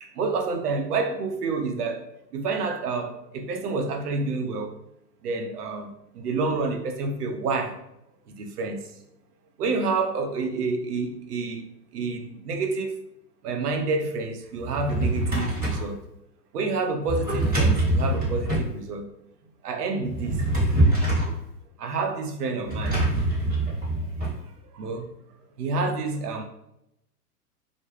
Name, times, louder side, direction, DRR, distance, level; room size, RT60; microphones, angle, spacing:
voice 1, 0.0-2.0 2.3-4.8 5.2-7.8 8.3-8.9 9.6-11.6 11.9-13.0 13.4-16.0 16.5-19.1 19.6-20.4 21.8-23.0 24.7-25.1 25.6-26.4, right 3 dB, 70° right, 0.6 m, -28 dB
Drawer open or close, 14.6-15.9 17.1-18.7 20.0-21.4 22.7-24.3, right 1 dB, 15° right, 1.1 m, -24 dB
2.2 x 2.1 x 3.1 m
hypercardioid pair, 120°, 48 cm